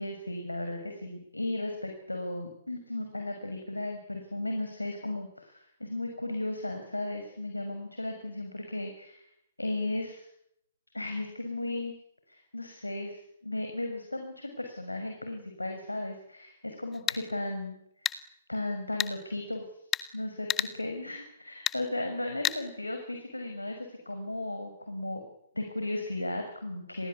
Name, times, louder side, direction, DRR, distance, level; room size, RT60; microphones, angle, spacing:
voice 1, 0.0-9.3 9.6-10.3 10.9-11.9 12.3-17.8 18.0-18.1 18.5-19.7 20.1-25.2 25.5-27.1, left 2 dB, 85° left, 5 dB, 6.4 m, -35 dB
sound 1, 16.9-17.2 18.1-18.2 19.0-19.1 19.9-20.1 20.5-20.7 21.7-21.8 22.4-22.6, left 10 dB, 20° left, 1.6 m, -29 dB
30.0 x 22.5 x 8.6 m, 0.76 s
figure-of-eight pair, 120°, 0 cm